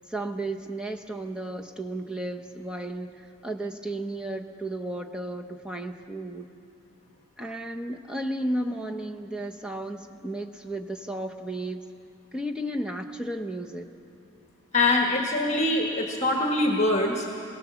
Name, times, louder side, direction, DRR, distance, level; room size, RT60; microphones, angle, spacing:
voice 1, 0.1-3.1 3.4-6.5 7.4-11.8 12.3-13.9, right 1 dB, 5° right, 3 dB, 0.9 m, -33 dB
voice 2, 14.7-17.3, left 2 dB, 30° left, 1 dB, 1.5 m, -23 dB
24.5 x 17.0 x 7.0 m, 2.7 s
head